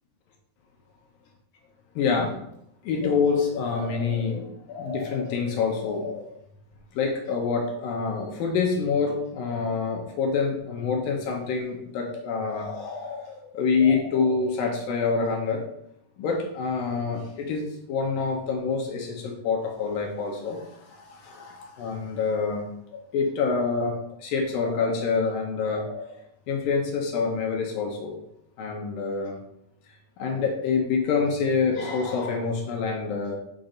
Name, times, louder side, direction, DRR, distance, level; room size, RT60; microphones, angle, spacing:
voice 1, 2.0-2.4 2.8-6.3 6.9-15.6 16.2-26.1 26.5-28.2 28.6-29.3 30.2-33.4, left 5 dB, 75° left, 0 dB, 2.2 m, -27 dB
7.0 x 6.0 x 3.9 m, 0.76 s
omnidirectional pair, 5.3 m